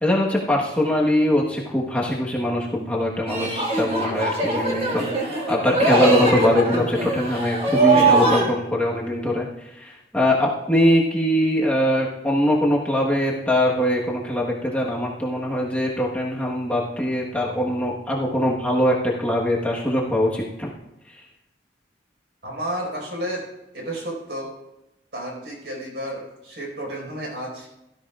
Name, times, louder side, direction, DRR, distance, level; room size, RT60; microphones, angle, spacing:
voice 1, 0.0-9.5 9.7-20.7, left 1 dB, 5° left, -4 dB, 1.3 m, -22 dB
sound 1, 3.3-8.5, right 3 dB, 30° right, 2.0 m, -21 dB
voice 2, 22.4-23.4 23.7-24.5 25.1-27.7, right 1 dB, 60° right, -1 dB, 4.8 m, -31 dB
17.0 x 12.5 x 2.4 m, 0.92 s
head